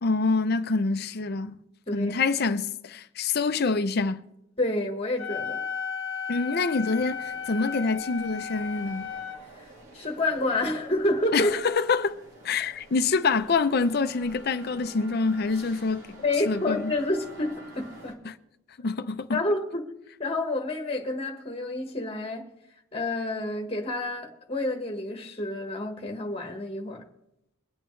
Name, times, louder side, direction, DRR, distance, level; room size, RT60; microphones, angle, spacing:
voice 1, 0.0-1.6 1.9-4.2 6.3-9.1 11.3-12.2 12.4-16.2 16.5-16.9 18.3-18.4 18.8-19.4, left 4 dB, 45° left, 0.5 m, -26 dB
voice 2, 4.6-5.6 9.5-11.6 16.2-18.2 19.3-19.9 20.2-22.5 22.9-27.0, left 2 dB, 25° left, 1.3 m, -29 dB
Wind instrument woodwind instrument, 5.2-9.4, left 6 dB, 65° left, 1.0 m, -34 dB
sound 1, 6.9-18.1, right 1 dB, 80° right, 2.5 m, -49 dB
23.0 x 8.9 x 3.2 m
head